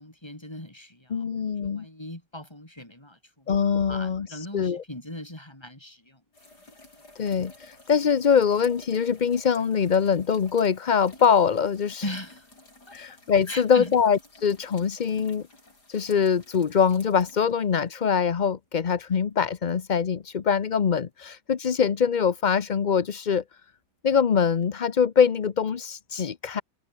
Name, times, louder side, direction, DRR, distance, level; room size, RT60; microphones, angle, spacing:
voice 1, 0.0-3.5 3.9-6.2 12.0-12.5 12.9-13.0 13.5-13.9, left 1 dB, 15° left, 4.5 m, -39 dB
voice 2, 1.1-1.9 3.5-4.3 4.5-4.8 7.2-12.0 12.9-15.4 15.9-23.4 24.0-26.6, left 6 dB, 45° left, 0.6 m, -23 dB
sound 1, 6.3-18.2 19.7-19.8 24.6-24.7, left 2 dB, 70° left, 7.9 m, -52 dB
omnidirectional pair, 1.8 m